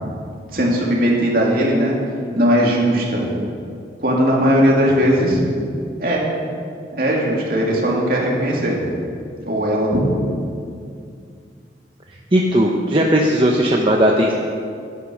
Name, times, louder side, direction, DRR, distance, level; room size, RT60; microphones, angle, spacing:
voice 1, 0.5-2.0 2.3-3.3 4.0-5.4 6.0-6.2 6.9-8.7 9.5-10.0, equal, 55° right, -3 dB, 2.8 m, -18 dB
voice 2, 12.3-14.3, equal, 30° right, -1 dB, 0.8 m, -16 dB
12.0 x 10.5 x 6.4 m, 2.3 s
head